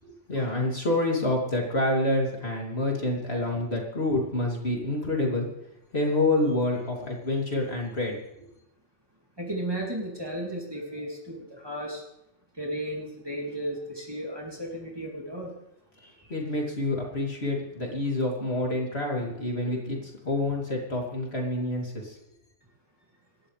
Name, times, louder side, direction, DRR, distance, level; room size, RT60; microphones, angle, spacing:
voice 1, 0.3-5.5 5.9-8.2 16.3-22.2, left 2 dB, 60° left, -1 dB, 3.3 m, -27 dB
voice 2, 9.4-12.0 12.6-15.5 16.0-16.3, right 1 dB, 20° right, -3 dB, 3.3 m, -35 dB
26.5 x 12.5 x 3.4 m, 0.84 s
omnidirectional pair, 1.2 m